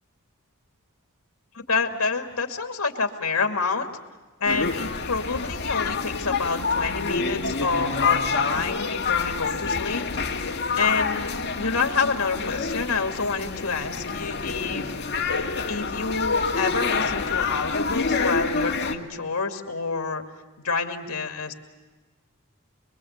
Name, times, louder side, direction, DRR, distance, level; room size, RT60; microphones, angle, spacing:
voice 1, 1.5-3.9 4.4-10.0 10.8-11.3 11.6-14.9 15.7-20.2 20.6-21.5, left 4 dB, 70° left, 4 dB, 2.4 m, -28 dB
sound 1, 4.4-18.9, left 4 dB, 50° left, 2.0 m, -27 dB
25.5 x 24.0 x 8.1 m, 1.3 s
head